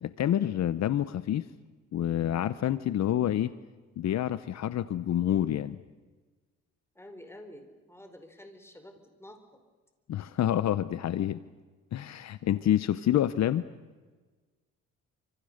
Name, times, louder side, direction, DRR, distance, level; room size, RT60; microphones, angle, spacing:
voice 1, 0.0-1.5 1.9-3.5 4.0-5.8 10.1-11.4 11.9-13.6, left 11 dB, 60° left, 14 dB, 0.9 m, -28 dB
voice 2, 6.9-9.6, left 1 dB, 10° left, 6 dB, 4.5 m, -49 dB
28.0 x 26.0 x 6.7 m, 1.3 s
cardioid pair, 90°, 30 cm